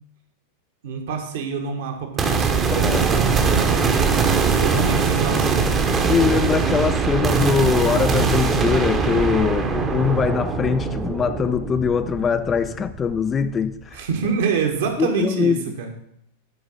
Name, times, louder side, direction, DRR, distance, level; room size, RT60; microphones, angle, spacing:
voice 1, 0.8-4.2 4.6-5.9 13.9-15.9, right 5 dB, 55° right, 1.6 m, -26 dB
sound 1, 2.2-13.5, right 5 dB, 20° right, 1.0 m, -21 dB
voice 2, 2.7-3.2 5.8-14.0 15.0-15.6, left 6 dB, 20° left, 0.5 m, -22 dB
10.0 x 4.8 x 5.5 m
figure-of-eight pair, 90°, 0 cm